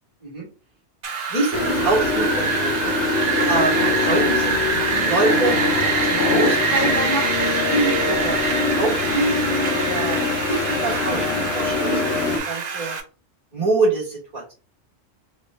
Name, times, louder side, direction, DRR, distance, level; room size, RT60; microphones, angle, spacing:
Wind, 1.0-13.0, right 5 dB, 75° right, 0.4 m, -25 dB
voice 1, 1.3-2.9 3.5-4.6 5.0-5.6 6.0-12.0 12.3-13.0 13.5-14.5, right 2 dB, 15° right, -5 dB, 1.3 m, -25 dB
sound 1, 1.5-12.4, left 4 dB, 65° left, 0.8 m, -24 dB
3.1 x 2.1 x 3.3 m, 0.35 s
omnidirectional pair, 1.3 m